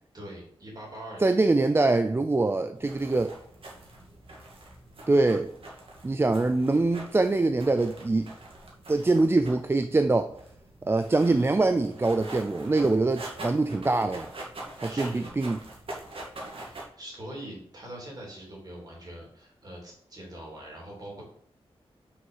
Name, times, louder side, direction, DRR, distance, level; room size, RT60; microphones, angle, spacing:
voice 1, 0.1-1.3 14.9-15.3 16.6-21.2, right 1 dB, 40° right, -3 dB, 3.2 m, -43 dB
voice 2, 1.2-3.3 5.1-5.5 6.0-8.3 8.9-10.3 10.8-14.3 14.8-15.6, right 2 dB, 20° right, 9 dB, 0.4 m, -24 dB
sound 1, 2.7-16.8, right 2 dB, 60° right, 2.0 m, -44 dB
6.2 x 5.8 x 5.6 m, 0.65 s
wide cardioid pair, 135°, 11 cm